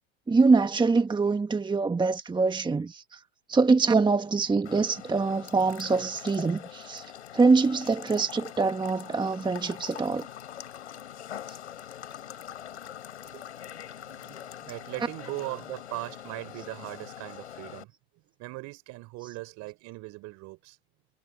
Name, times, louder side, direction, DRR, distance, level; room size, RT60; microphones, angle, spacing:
voice 1, 0.3-3.2 3.5-7.0 7.3-10.3, right 4 dB, 15° right, 1.4 m, -24 dB
sound 1, 4.6-17.8, left 10 dB, 90° left, 5.9 m, -43 dB
voice 2, 13.7-17.9 18.4-20.8, right 21 dB, 55° right, 4.0 m, -40 dB
hypercardioid pair, 90°, 33 cm